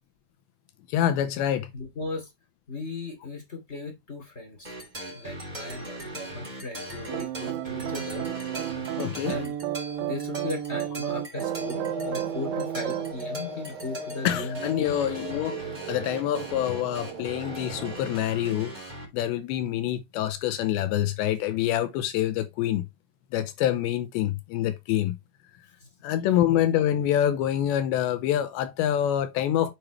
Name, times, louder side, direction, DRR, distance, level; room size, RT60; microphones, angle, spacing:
voice 1, 0.9-1.7 9.0-9.4 14.2-15.6 15.9-22.9 23.3-25.2 26.0-29.7, left 11 dB, 85° left, 2.7 m, -26 dB
voice 2, 1.7-2.3 2.7-4.7 5.1-8.3 9.2-9.5 10.0-15.0 25.8-25.9, left 3 dB, 25° left, 1.6 m, -37 dB
sound 1, 4.6-19.1, right 1 dB, 15° right, 2.0 m, -40 dB
sound 2, 7.1-13.1, right 12 dB, 80° right, 2.8 m, -32 dB
sound 3, 11.3-18.0, right 3 dB, 45° right, 1.8 m, -37 dB
7.6 x 6.7 x 3.1 m
omnidirectional pair, 5.5 m